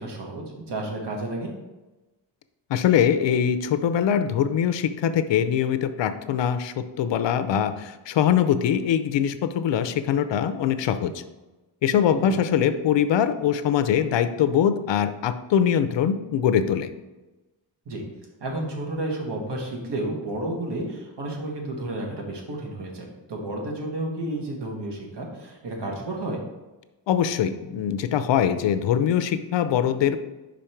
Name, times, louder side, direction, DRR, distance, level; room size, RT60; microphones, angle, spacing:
voice 1, 0.0-1.5 12.2-12.4 17.8-18.0 18.4-26.4, right 1 dB, 60° right, 0 dB, 1.6 m, -31 dB
voice 2, 2.7-11.1 11.8-16.9 27.1-30.2, left 9 dB, 70° left, 11 dB, 0.6 m, -22 dB
5.2 x 5.2 x 4.4 m, 1.1 s
cardioid pair, 110°, 46 cm